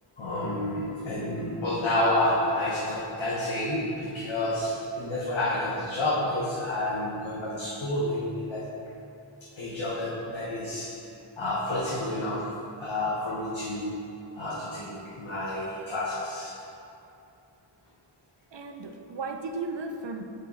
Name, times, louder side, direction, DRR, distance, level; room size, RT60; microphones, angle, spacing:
voice 1, 0.2-8.6 9.6-11.0 11.4-14.1 14.3-16.6, left 1 dB, 80° left, -6 dB, 1.1 m, -29 dB
voice 2, 18.5-20.3, right 3 dB, 65° right, 5 dB, 0.7 m, -35 dB
7.6 x 5.4 x 4.1 m, 2.7 s
wide cardioid pair, 50°, 46 cm